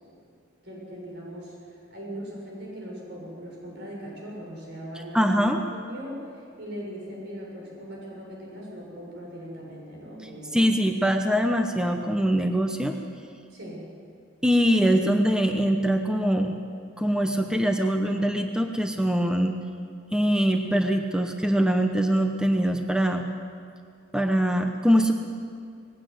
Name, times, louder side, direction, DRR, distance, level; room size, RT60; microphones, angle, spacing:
voice 1, 0.6-5.4 5.7-10.6 13.5-13.9, equal, 60° right, -3 dB, 6.8 m, -39 dB
voice 2, 5.1-5.6 10.5-13.0 14.4-16.6 17.0-19.6 20.1-23.2 24.1-25.1, equal, 5° right, 4 dB, 0.9 m, -23 dB
20.5 x 16.5 x 8.0 m, 2.3 s
head